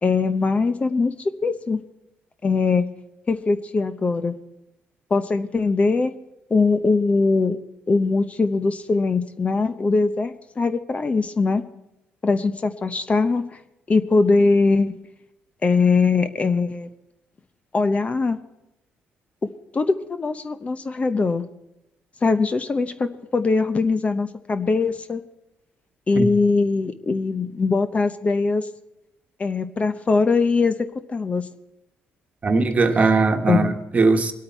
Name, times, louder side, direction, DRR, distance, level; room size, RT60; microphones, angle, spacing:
voice 1, 0.0-1.8 2.4-2.8 3.3-4.4 5.1-6.1 6.5-7.6 7.9-11.6 12.2-13.4 13.9-15.0 15.6-16.9 17.7-18.4 19.7-21.4 22.2-25.2 26.1-28.7 29.4-30.7 31.1-31.4 33.5-33.7, left 4 dB, 30° left, 0.8 m, -21 dB
voice 2, 32.4-34.3, right 3 dB, 35° right, 1.3 m, -19 dB
22.0 x 8.6 x 4.5 m
cardioid pair, 90°, 4 cm